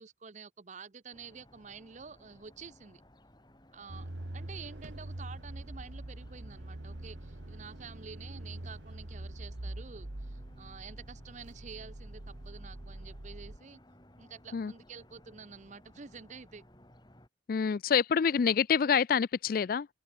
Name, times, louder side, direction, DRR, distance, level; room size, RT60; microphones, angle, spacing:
voice 1, 0.0-3.0 3.7-13.8 14.2-16.6, right 5 dB, 40° right, 0.7 m, -49 dB
sound 1, 1.1-17.3, left 1 dB, 25° left, 6.9 m, -60 dB
sound 2, 3.9-13.6, right 1 dB, 80° right, 1.7 m, -44 dB
voice 2, 17.5-19.9, left 7 dB, 50° left, 0.4 m, -27 dB
open air
head